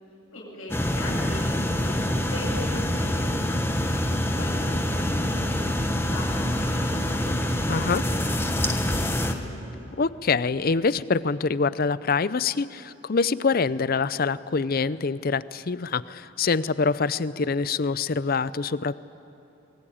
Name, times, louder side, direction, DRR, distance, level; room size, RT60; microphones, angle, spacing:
voice 1, 0.3-3.8 4.4-6.9 7.2-8.2 8.6-8.7 9.0-9.7, left 1 dB, 85° left, -3 dB, 7.4 m, -40 dB
sound 1, 0.7-9.3, left 1 dB, 10° left, 1.2 m, -26 dB
voice 2, 7.7-8.0 10.0-19.0, left 4 dB, 45° left, 17 dB, 0.5 m, -25 dB
24.5 x 22.0 x 8.7 m, 2.9 s
head